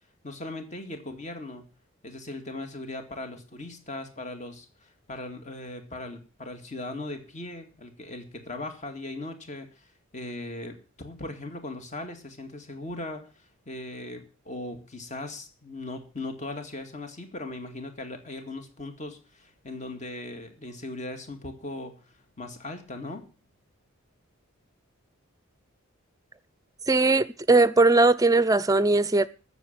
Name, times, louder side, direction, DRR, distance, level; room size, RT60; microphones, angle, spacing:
voice 1, 0.2-1.7 2.0-9.9 10.1-22.0 22.4-23.2, left 2 dB, 35° left, 2.2 m, -38 dB
voice 2, 26.9-29.3, right 3 dB, 15° right, 0.6 m, -20 dB
13.5 x 7.2 x 8.7 m
head